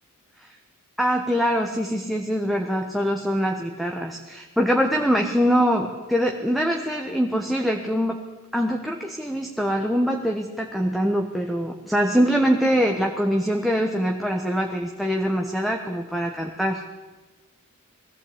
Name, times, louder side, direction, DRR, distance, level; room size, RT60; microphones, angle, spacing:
voice 1, 1.0-8.2 8.5-16.8, equal, ahead, 1 dB, 1.2 m, -23 dB
20.5 x 15.0 x 8.6 m, 1.2 s
head